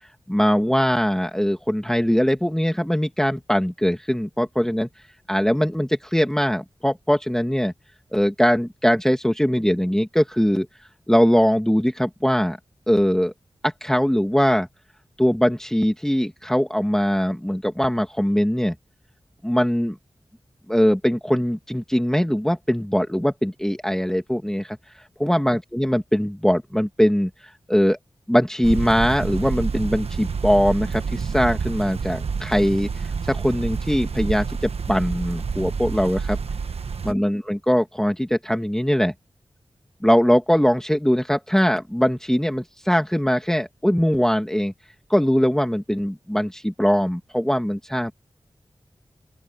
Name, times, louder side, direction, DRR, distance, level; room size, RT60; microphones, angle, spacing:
voice 1, 0.3-4.9 5.3-7.7 8.1-10.7 11.1-12.6 12.9-13.3 13.6-14.7 15.2-18.7 19.4-20.0 20.7-24.8 25.2-27.3 27.7-28.0 28.3-36.4 37.0-39.1 40.0-44.7 45.1-48.1, equal, 5° left, 1.9 m, -21 dB
sound 1, 28.6-37.1, right 5 dB, 85° right, 1.1 m, -28 dB
open air
wide cardioid pair, 60°, 10 cm